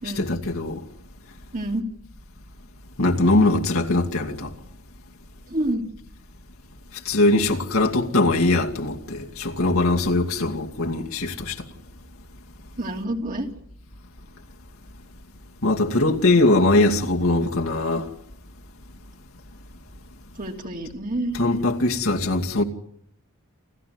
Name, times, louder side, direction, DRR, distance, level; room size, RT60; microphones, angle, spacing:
voice 1, 0.0-0.8 3.0-4.5 7.0-11.6 15.6-18.1 21.3-22.6, left 2 dB, 75° left, 2.5 m, -21 dB
voice 2, 1.5-1.8 5.5-5.8 12.8-13.5 20.4-21.3, right 1 dB, 40° right, 3.1 m, -28 dB
29.0 x 14.0 x 9.6 m
head